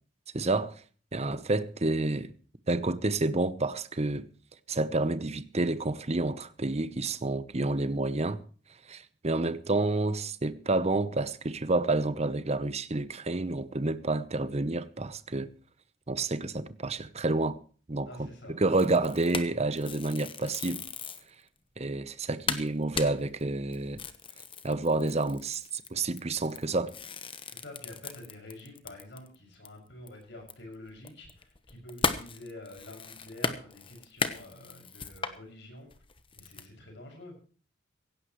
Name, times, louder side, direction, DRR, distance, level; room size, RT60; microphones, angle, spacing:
voice 1, 0.3-0.7 1.1-2.3 2.7-4.3 4.7-8.4 8.9-15.5 16.1-17.6 17.9-18.3 18.6-20.8 21.8-24.0 24.6-26.9, right 2 dB, 35° right, 0.9 m, -29 dB
voice 2, 18.1-18.6 27.5-35.9 36.3-37.4, left 1 dB, 65° left, 6.3 m, -47 dB
sound 1, 18.7-21.3 21.8-21.9 22.1-22.2 22.5-29.3 29.6-29.7 30.1-35.4 35.9-36.7, left 5 dB, 30° left, 1.1 m, -37 dB
17.0 x 16.5 x 3.1 m
head